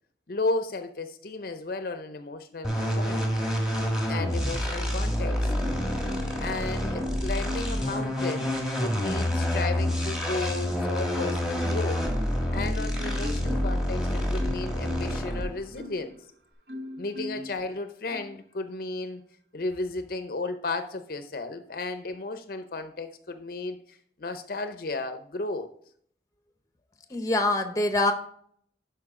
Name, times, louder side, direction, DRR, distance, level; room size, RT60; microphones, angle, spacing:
voice 1, 0.3-3.3 4.1-5.5 6.4-12.0 12.5-16.2 17.0-19.2 19.5-25.7, left 3 dB, 55° left, 9 dB, 0.6 m, -34 dB
sound 1, 2.6-15.6, equal, 5° right, 1.5 m, -28 dB
Marimba xylophone, 5.6-6.6 7.0-8.8 9.3-10.2 10.7-16.2 16.7-17.6 18.1-18.4, left 1 dB, 60° right, 0.8 m, -39 dB
voice 2, 6.7-7.1 17.4-17.5 27.1-28.1, left 2 dB, 20° left, 7 dB, 0.8 m, -26 dB
11.5 x 4.6 x 3.6 m, 0.62 s
head